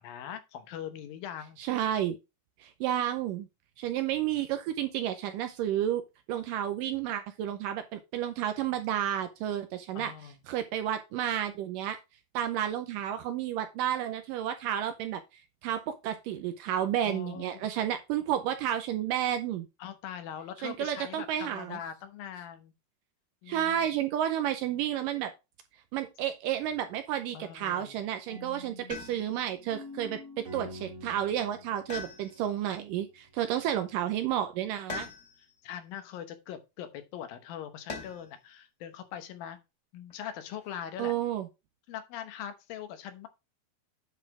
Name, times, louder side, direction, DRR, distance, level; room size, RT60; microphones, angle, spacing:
voice 1, 0.0-1.6 9.9-10.4 17.0-17.7 19.8-22.7 23.4-23.8 27.3-28.0 33.5-33.6 35.6-39.6 39.9-41.1 41.9-43.3, left 9 dB, 75° left, 2.7 m, -42 dB
voice 2, 1.6-2.2 2.6-3.5 3.8-6.0 6.3-10.1 10.5-12.0 12.3-15.2 15.6-19.7 20.6-21.8 23.5-25.3 25.9-35.1 41.0-41.5, right 11 dB, 80° right, 2.0 m, -31 dB
sound 1, 28.3-33.2, left 1 dB, 45° right, 2.2 m, -47 dB
sound 2, 28.9-29.5 31.9-32.7 34.9-35.6 37.9-38.4 40.1-40.7, left 5 dB, 25° left, 1.8 m, -42 dB
9.9 x 4.1 x 4.8 m
omnidirectional pair, 4.4 m